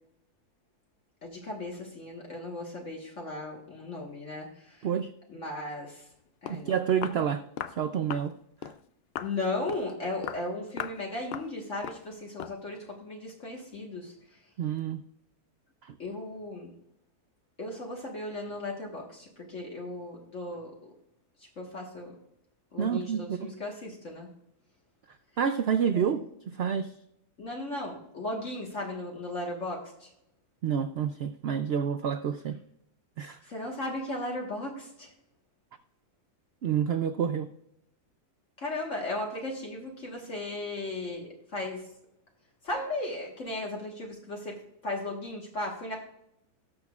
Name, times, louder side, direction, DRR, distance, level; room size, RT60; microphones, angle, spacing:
voice 1, 1.2-4.9 5.3-6.1 6.4-6.7 9.2-14.4 16.0-16.7 17.6-20.7 21.4-22.1 22.7-24.3 25.9-26.1 27.4-30.1 33.4-35.1 38.6-41.9 42.6-44.6 44.8-46.0, left 2 dB, 55° left, -1 dB, 1.8 m, -36 dB
Walk footsteps, 6.1-6.2 6.5-6.6 7.0-7.2 7.6-7.8 8.1-8.3 8.6-8.8 9.2-9.4 9.7-9.9 10.2-10.5 10.8-11.0 11.3-11.5 11.8-12.1 12.4-12.6, left 9 dB, 80° left, 0.5 m, -37 dB
voice 2, 6.5-7.4 7.7-8.4 8.6-8.7 14.6-15.0 15.8-16.0 22.8-23.5 25.4-26.9 30.6-32.6 33.2-33.4 36.6-37.5, right 8 dB, 90° right, 10 dB, 0.5 m, -29 dB
18.5 x 6.3 x 2.4 m, 0.78 s
omnidirectional pair, 1.6 m